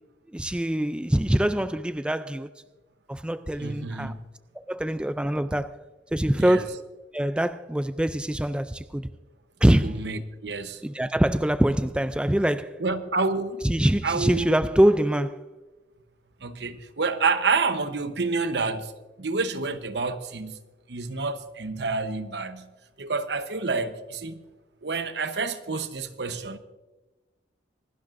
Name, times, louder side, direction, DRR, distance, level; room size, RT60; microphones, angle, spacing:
voice 1, 0.3-2.5 3.1-4.1 4.6-5.7 6.1-6.8 7.1-9.1 9.6-10.0 10.8-12.8 13.6-15.4, right 1 dB, 5° right, 0.3 m, -24 dB
voice 2, 3.6-4.2 6.4-6.6 9.8-10.8 12.8-13.6 14.0-14.6 16.4-18.9 19.2-20.5 20.9-22.7 23.0-24.4 24.8-26.6, right 4 dB, 65° right, 0.9 m, -28 dB
25.5 x 12.0 x 2.6 m
head